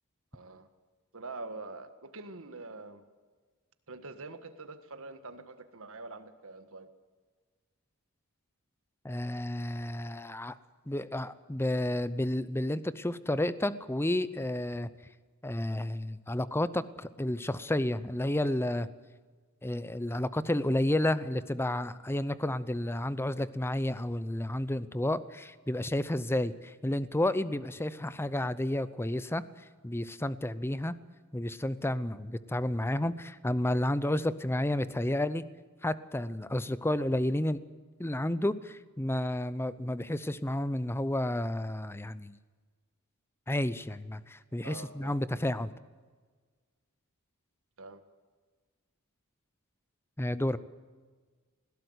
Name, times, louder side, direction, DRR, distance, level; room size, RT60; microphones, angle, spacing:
voice 1, 0.3-0.7 1.1-3.0 3.9-6.9 44.6-45.2 47.8-48.0, right 3 dB, 65° right, 10 dB, 1.6 m, -45 dB
voice 2, 9.0-10.5 10.9-14.9 15.4-18.9 19.6-29.4 29.8-31.0 31.3-35.4 35.8-37.6 38.0-42.3 43.5-45.7 50.2-50.6, left 1 dB, 10° left, 15 dB, 0.7 m, -31 dB
20.5 x 17.0 x 8.0 m, 1.5 s
head